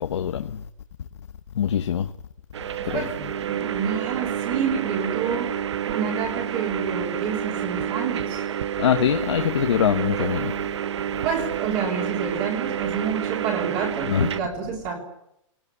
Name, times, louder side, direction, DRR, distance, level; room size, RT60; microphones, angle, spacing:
voice 1, 0.0-0.5 1.6-2.1 2.9-3.0 8.8-10.5 14.1-14.3, left 9 dB, 55° left, 1.0 m, -23 dB
sound 1, 2.5-14.4, right 9 dB, 55° right, 1.2 m, -29 dB
voice 2, 2.8-8.4 11.2-15.0, right 6 dB, 25° right, 3.3 m, -29 dB
23.0 x 18.0 x 9.8 m
hypercardioid pair, 170°, 17 cm